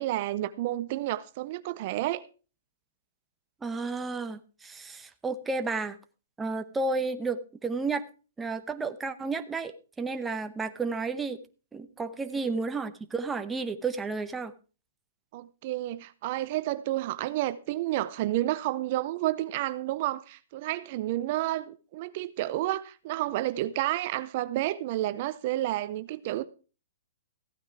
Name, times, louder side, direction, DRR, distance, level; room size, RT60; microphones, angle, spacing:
voice 1, 0.0-2.2 12.2-12.3 15.3-26.4, right 15 dB, 45° right, 0.6 m, -30 dB
voice 2, 3.6-6.0 6.4-8.0 8.4-11.4 11.7-14.5, right 3 dB, 10° right, 0.9 m, -32 dB
15.0 x 9.2 x 4.6 m
hypercardioid pair, 145°, 0 cm